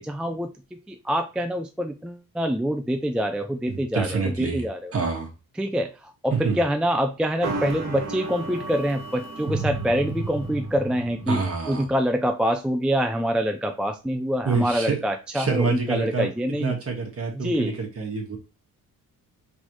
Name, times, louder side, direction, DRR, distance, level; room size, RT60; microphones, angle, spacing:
voice 1, 0.0-4.9 5.6-16.7 17.3-17.8, equal, 5° right, 6 dB, 0.4 m, -26 dB
voice 2, 3.7-4.6 4.9-5.3 6.4-6.6 11.3-11.9 14.4-15.0 15.3-16.3 16.6-18.4, right 4 dB, 40° right, 1 dB, 1.7 m, -27 dB
sound 1, 7.4-11.5, right 3 dB, 65° right, 1.5 m, -32 dB
4.0 x 3.8 x 3.0 m, 0.31 s
cardioid pair, 85°, 35 cm